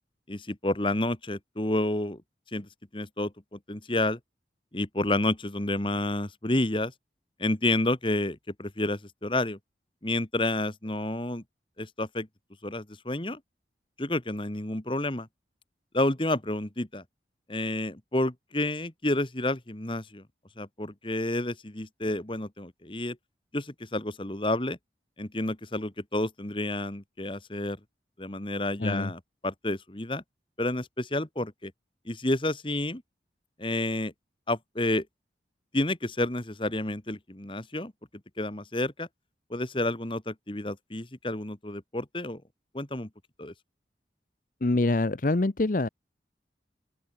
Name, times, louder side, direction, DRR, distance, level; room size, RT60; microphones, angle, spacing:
voice 1, 0.3-2.2 2.5-4.2 4.7-6.9 7.4-9.6 10.0-11.4 11.8-12.3 12.6-13.4 14.0-15.3 15.9-17.0 17.5-20.2 20.6-23.2 23.5-24.8 25.2-27.8 28.2-30.2 30.6-31.7 32.0-33.0 33.6-34.1 34.5-35.0 35.7-37.9 38.4-39.1 39.5-42.4 42.7-43.1 43.4-43.5, left 1 dB, 30° left, 1.8 m, -30 dB
voice 2, 28.8-29.1 44.6-45.9, left 2 dB, 50° left, 0.8 m, -25 dB
open air
head